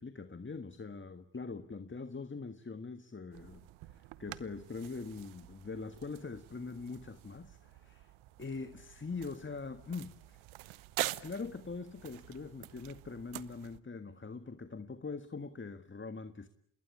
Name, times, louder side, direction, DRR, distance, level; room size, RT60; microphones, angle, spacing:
voice 1, 0.0-8.1 8.4-10.4 11.0-16.5, left 4 dB, 25° left, 1.7 m, -43 dB
sound 1, 3.3-13.8, right 16 dB, 80° right, 1.1 m, -46 dB
28.0 x 21.0 x 9.8 m
supercardioid pair, 50°, 48 cm